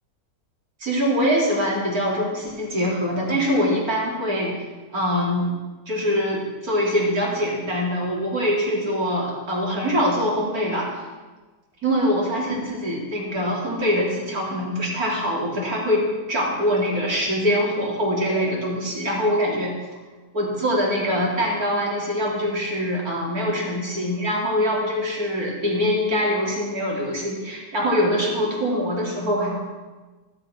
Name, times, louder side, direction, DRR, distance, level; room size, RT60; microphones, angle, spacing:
voice 1, 0.8-4.6 4.9-5.5 5.9-10.9 11.8-19.7 20.3-29.6, equal, 55° right, -3 dB, 4.2 m, -23 dB
13.5 x 12.0 x 6.3 m, 1.3 s
omnidirectional pair, 1.9 m